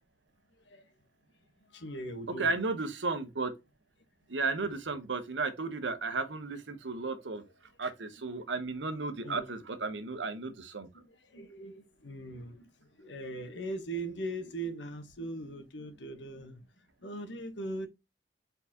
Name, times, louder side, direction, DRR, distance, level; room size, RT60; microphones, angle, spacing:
voice 1, 1.7-2.6 8.4-8.5 9.2-9.6 10.9-16.7 17.0-17.9, right 1 dB, 80° left, 1.1 m, -40 dB
voice 2, 2.4-3.5 4.3-7.4 7.8-10.9, right 3 dB, 90° right, 1.0 m, -34 dB
4.5 x 4.0 x 2.9 m
head